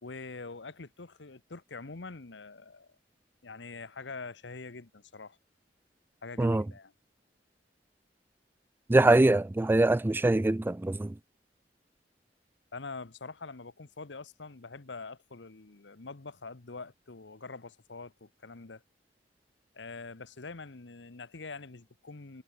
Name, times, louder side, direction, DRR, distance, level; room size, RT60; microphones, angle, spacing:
voice 1, 0.0-2.9 3.4-5.4 6.2-6.9 12.7-18.8 19.7-22.4, left 3 dB, 85° left, 1.2 m, -44 dB
voice 2, 8.9-11.1, right 2 dB, 10° right, 0.3 m, -23 dB
head